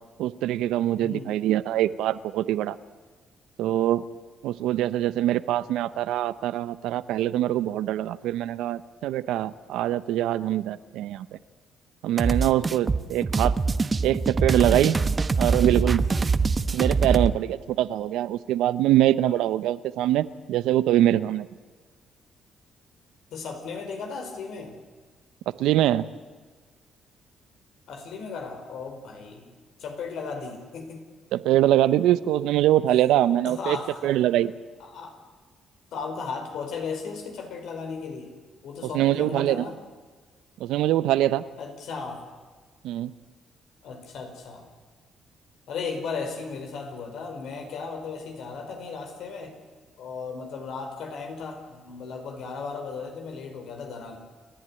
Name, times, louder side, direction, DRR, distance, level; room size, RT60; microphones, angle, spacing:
voice 1, 0.2-2.8 3.6-4.0 4.4-11.3 12.0-13.5 14.0-15.0 15.4-16.0 16.7-21.5 25.6-26.1 31.3-33.8 34.0-34.5 38.9-39.7 40.6-41.4 42.8-43.1, right 13 dB, 90° right, 15 dB, 0.7 m, -23 dB
voice 2, 1.0-1.3 23.3-24.8 27.9-29.5 29.8-31.0 33.5-34.1 34.8-35.2 35.9-38.3 38.6-39.8 41.6-42.2 43.8-44.7 45.7-49.6 50.0-54.2, left 5 dB, 80° left, 5 dB, 4.6 m, -36 dB
sound 1, 12.2-17.3, right 4 dB, 30° right, 0.9 m, -24 dB
30.0 x 11.0 x 9.9 m, 1.4 s
cardioid pair, 90°, 0 cm